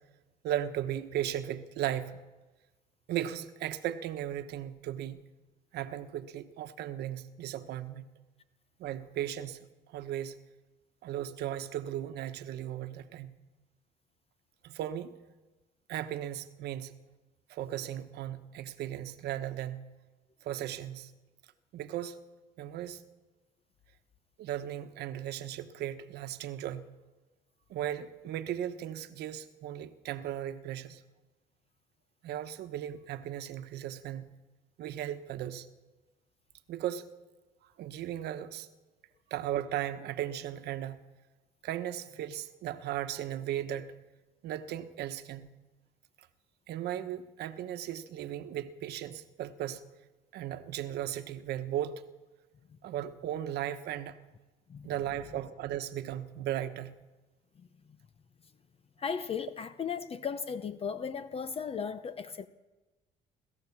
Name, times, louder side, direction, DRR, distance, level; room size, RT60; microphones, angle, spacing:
voice 1, 0.4-2.2 3.1-5.2 5.7-8.1 8.8-10.4 11.0-13.4 14.6-15.1 15.9-17.0 17.5-19.9 20.4-21.1 21.7-22.2 22.6-23.0 24.4-26.9 27.7-31.0 32.2-34.3 34.8-35.7 36.7-37.1 37.8-38.7 39.3-41.0 41.6-43.9 44.4-45.5 46.7-49.8 50.3-51.9 52.8-54.1 54.8-57.0, right 11 dB, 75° right, 1.2 m, -36 dB
voice 2, 57.6-58.0 59.0-62.5, left 6 dB, 35° left, 0.7 m, -36 dB
28.5 x 14.0 x 7.3 m
cardioid pair, 110°, 17 cm